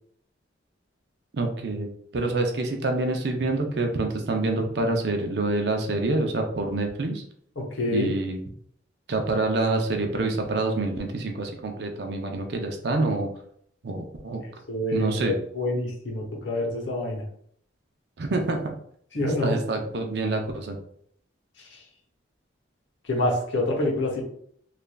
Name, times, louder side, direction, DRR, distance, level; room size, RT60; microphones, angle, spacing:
voice 1, 1.3-7.2 7.9-8.4 9.1-13.3 13.8-14.4 14.9-15.4 18.2-18.7 19.4-20.8, right 2 dB, 60° right, 3 dB, 0.5 m, -27 dB
voice 2, 7.6-8.1 14.4-17.2 19.1-19.6 21.6-21.8 23.0-24.2, left 1 dB, 80° left, -1 dB, 0.8 m, -27 dB
3.2 x 2.4 x 2.2 m, 0.65 s
head